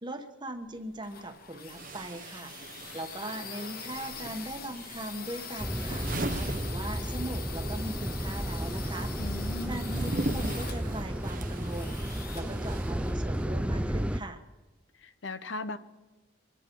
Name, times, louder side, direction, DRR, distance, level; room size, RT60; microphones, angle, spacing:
voice 1, 0.0-2.5 2.9-6.1 6.3-9.1 9.7-14.4, right 1 dB, 20° right, 5 dB, 1.2 m, -39 dB
sound 1, 0.6-13.4, left 6 dB, 45° left, 1.1 m, -44 dB
sound 2, 0.7-0.8 1.7-7.5 7.7-13.6, right 2 dB, 40° right, 0.9 m, -40 dB
sound 3, 5.6-14.2, right 1 dB, 5° right, 0.4 m, -33 dB
voice 2, 9.2-9.9 15.0-15.8, left 3 dB, 65° left, 12 dB, 0.8 m, -38 dB
25.0 x 10.5 x 4.6 m, 1.2 s
head